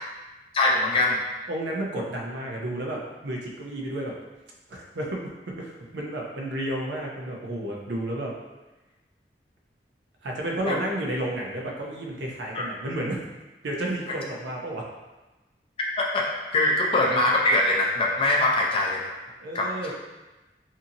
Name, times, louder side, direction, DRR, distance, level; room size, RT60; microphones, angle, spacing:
voice 1, 0.5-1.2 10.7-10.8 12.5-12.7 16.0-19.1 19.5-19.9, left 2 dB, 30° left, -2 dB, 0.4 m, -23 dB
voice 2, 1.5-4.1 4.7-8.3 10.2-13.2 13.6-14.9 19.4-19.9, right 1 dB, 90° right, -1 dB, 0.6 m, -31 dB
2.7 x 2.5 x 2.7 m, 1.1 s
head